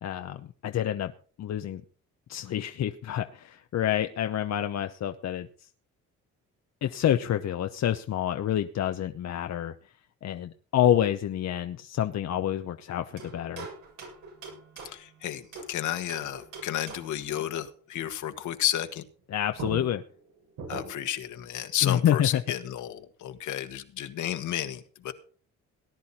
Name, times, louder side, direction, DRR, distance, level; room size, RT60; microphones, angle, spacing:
voice 1, 0.0-1.1 1.4-1.8 2.3-5.5 6.8-9.7 10.2-13.7 19.3-20.0 21.8-22.4, left 11 dB, 60° left, 8 dB, 0.9 m, -28 dB
sound 1, 13.2-15.7 16.1-17.3 19.2-19.3 19.6-21.2, right 4 dB, 90° right, 7.7 m, -42 dB
voice 2, 14.8-19.0 20.7-25.1, left 11 dB, 75° left, 8 dB, 1.7 m, -32 dB
18.5 x 10.5 x 4.3 m, 0.42 s
cardioid pair, 90°, 30 cm